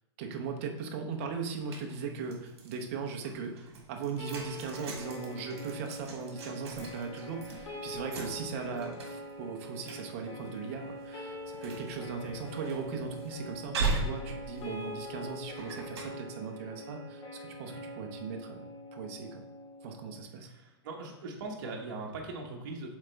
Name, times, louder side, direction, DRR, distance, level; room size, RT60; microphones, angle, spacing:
voice 1, 0.2-19.4 19.8-20.5, right 5 dB, 30° right, 3 dB, 0.7 m, -39 dB
sound 1, 1.6-2.8 3.2-16.1, right 3 dB, 65° right, 1.6 m, -40 dB
sound 2, 4.2-20.2, left 1 dB, 75° left, 2.1 m, -44 dB
voice 2, 20.4-23.0, right 3 dB, 45° right, -1 dB, 1.2 m, -40 dB
7.1 x 4.0 x 3.4 m, 0.96 s
supercardioid pair, 175°, 14 cm